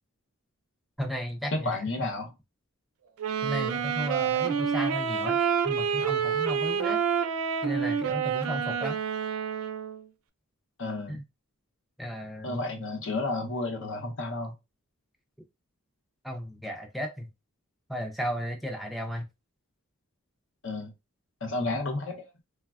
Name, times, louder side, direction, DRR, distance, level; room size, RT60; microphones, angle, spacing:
voice 1, 1.0-1.8 3.4-5.4 5.6-7.0 7.6-9.0 11.1-11.2 12.0-12.6 16.2-17.3 17.9-19.3, equal, ahead, 0.3 m, -34 dB
voice 2, 1.5-2.3 10.8-11.2 12.4-14.5 20.6-20.9 21.4-22.3, left 2 dB, 55° left, 0.7 m, -31 dB
Wind instrument woodwind instrument, 3.2-10.0, right 7 dB, 75° right, 0.4 m, -28 dB
3.2 x 2.1 x 2.3 m
head